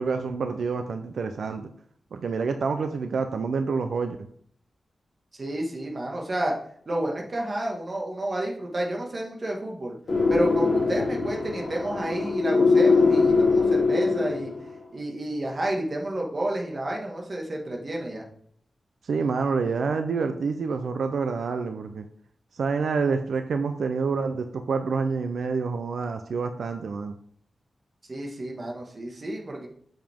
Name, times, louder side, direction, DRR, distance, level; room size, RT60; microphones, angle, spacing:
voice 1, 0.0-1.7 2.1-4.3 19.0-22.1 22.5-27.1, right 5 dB, 80° right, 7 dB, 0.5 m, -27 dB
voice 2, 5.3-6.5 6.8-9.9 10.3-14.5 14.9-18.2 28.1-29.7, right 1 dB, 35° right, -1 dB, 1.7 m, -30 dB
sound 1, 10.1-14.7, left 4 dB, 55° left, 2.7 m, -22 dB
7.7 x 7.3 x 3.6 m, 0.62 s
wide cardioid pair, 160°, 0 cm